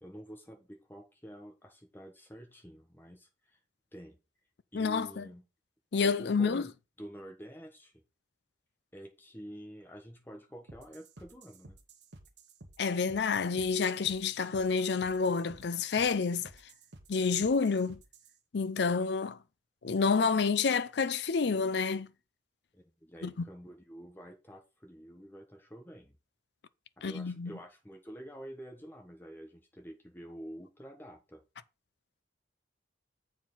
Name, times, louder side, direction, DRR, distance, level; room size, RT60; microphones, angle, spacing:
voice 1, 0.0-3.6 3.9-4.2 4.7-5.4 6.2-6.7 7.0-8.0 8.9-11.8 22.7-26.2 27.0-31.4, equal, 10° left, 1.4 m, -48 dB
voice 2, 4.7-5.3 5.9-6.7 12.8-16.5 17.1-18.0 18.5-19.4 19.8-22.1 23.2-23.5 27.0-27.5, left 5 dB, 60° left, 0.5 m, -29 dB
sound 1, 10.7-18.4, right 2 dB, 65° right, 1.3 m, -54 dB
7.4 x 4.6 x 5.5 m
head